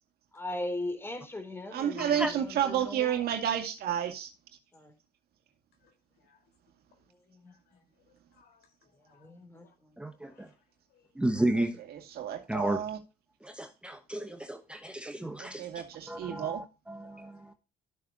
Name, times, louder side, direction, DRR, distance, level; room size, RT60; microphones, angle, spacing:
voice 1, 0.3-3.2 4.7-4.9 7.3-7.5 9.0-9.9, left 1 dB, 15° left, 3.1 m, -39 dB
voice 2, 1.7-4.3 11.5-13.0 15.4-16.6, right 9 dB, 65° right, 2.1 m, -31 dB
voice 3, 5.8-6.5 7.5-9.3 9.6-9.7 10.2-10.5 10.9-11.1 15.4-15.5 17.0-17.4, left 7 dB, 80° left, 4.2 m, -67 dB
voice 4, 10.0-10.5 11.2-11.8 12.5-12.8 13.4-15.7 16.1-17.5, right 1 dB, 5° right, 1.0 m, -33 dB
12.5 x 7.3 x 2.8 m
cardioid pair, 110°, 17 cm